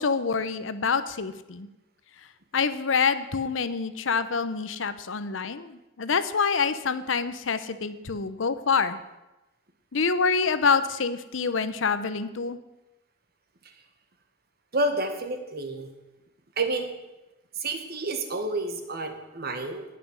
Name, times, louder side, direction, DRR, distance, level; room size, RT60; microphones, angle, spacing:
voice 1, 0.0-1.7 2.5-9.0 9.9-12.6, left 5 dB, 80° left, 12 dB, 0.7 m, -26 dB
voice 2, 14.7-15.9 16.6-16.9 17.6-19.8, right 2 dB, 55° right, 6 dB, 1.5 m, -29 dB
18.0 x 6.0 x 6.2 m, 1.0 s
head